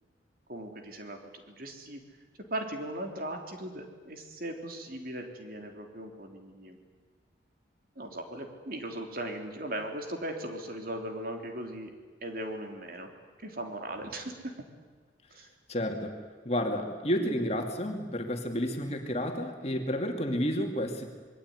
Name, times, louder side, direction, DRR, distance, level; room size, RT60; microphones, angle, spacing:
voice 1, 0.5-1.2 1.5-2.0 2.5-6.8 8.0-11.9 12.2-13.1 13.4-14.5 15.3-15.5, right 1 dB, 50° right, 4 dB, 3.5 m, -38 dB
voice 2, 15.7-16.1 16.4-21.1, equal, 35° left, 4 dB, 2.6 m, -31 dB
26.5 x 22.0 x 9.7 m, 1.4 s
head